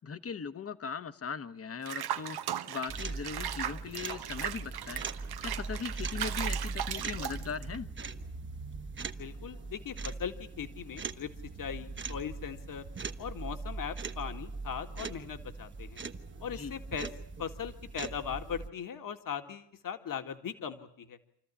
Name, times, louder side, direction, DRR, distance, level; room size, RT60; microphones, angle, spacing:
voice 1, 0.0-2.4 2.7-5.1 5.4-7.9 16.5-16.7, left 6 dB, 35° left, 1.2 m, -39 dB
Water / Bathtub (filling or washing), 1.9-7.8, right 11 dB, 70° right, 1.1 m, -37 dB
sound 1, 2.9-18.7, right 3 dB, 30° right, 1.2 m, -40 dB
voice 2, 9.2-12.9 13.2-16.0 16.4-17.1 17.4-21.2, left 7 dB, 55° left, 2.1 m, -39 dB
28.0 x 14.0 x 10.0 m
cardioid pair, 130°, 39 cm